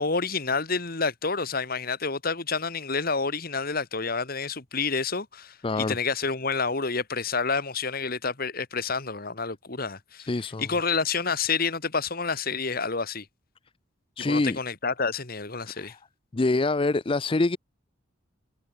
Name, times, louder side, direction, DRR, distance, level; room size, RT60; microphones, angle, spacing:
voice 1, 0.0-10.3 10.6-13.3 14.3-15.9, left 4 dB, 45° left, 1.9 m, -29 dB
voice 2, 5.6-6.0 10.3-10.7 14.2-14.6 15.7-16.0 16.3-17.6, left 2 dB, 25° left, 0.5 m, -25 dB
head